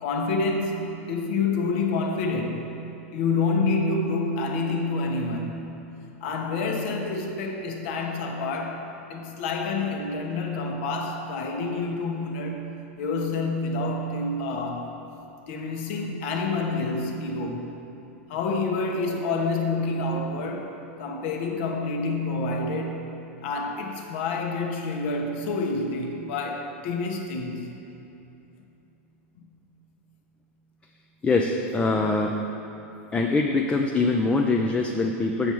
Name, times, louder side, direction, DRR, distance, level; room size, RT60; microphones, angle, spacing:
voice 1, 0.0-2.7 3.1-5.6 6.2-12.7 13.0-14.9 15.5-17.7 18.3-23.0 23.4-27.7 29.4-29.5, left 3 dB, 60° left, 2 dB, 1.0 m, -28 dB
voice 2, 31.2-32.4 33.1-35.5, left 3 dB, 15° left, 1 dB, 0.4 m, -23 dB
7.8 x 5.8 x 4.6 m, 2.8 s
hypercardioid pair, 125°, 7 cm